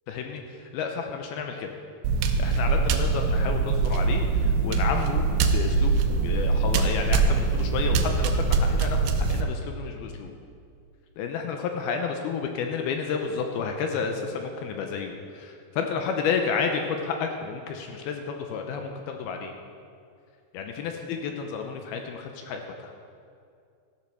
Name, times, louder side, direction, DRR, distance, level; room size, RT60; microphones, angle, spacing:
voice 1, 0.1-1.7 2.4-5.2 5.5-6.0 6.2-9.0 9.3-10.4 11.2-19.5 20.5-22.9, left 6 dB, 80° left, 4 dB, 2.3 m, -31 dB
sound 1, 2.0-9.4, right 4 dB, 80° right, 2.8 m, -23 dB
14.0 x 7.4 x 5.9 m, 2.4 s
omnidirectional pair, 5.1 m